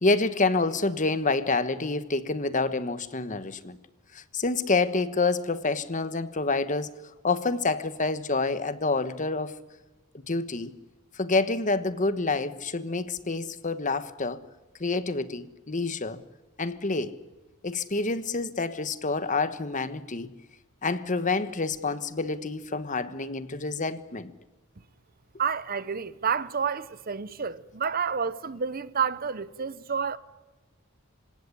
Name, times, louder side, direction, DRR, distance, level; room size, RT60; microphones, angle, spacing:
voice 1, 0.0-3.8 4.1-6.9 7.2-9.6 10.3-10.7 11.1-14.4 14.8-16.2 16.6-17.1 17.6-20.3 20.8-24.3, left 3 dB, 35° left, 1.3 m, -27 dB
voice 2, 25.4-30.2, right 6 dB, 45° right, 0.9 m, -29 dB
26.5 x 17.0 x 9.9 m
head